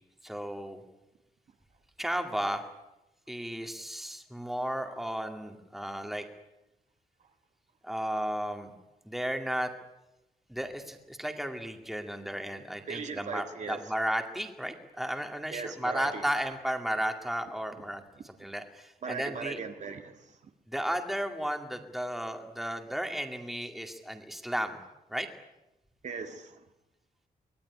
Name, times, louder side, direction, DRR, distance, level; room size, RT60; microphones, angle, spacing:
voice 1, 0.2-0.8 2.0-2.7 3.3-6.3 7.8-8.7 9.0-9.7 10.5-19.6 20.7-24.8 25.1-25.3, equal, ahead, 4 dB, 2.3 m, -34 dB
voice 2, 12.9-13.8 15.5-16.2 19.0-20.1 26.0-26.5, right 5 dB, 50° right, 6 dB, 1.7 m, -38 dB
24.0 x 19.5 x 10.0 m, 0.94 s
wide cardioid pair, 175°, 16 cm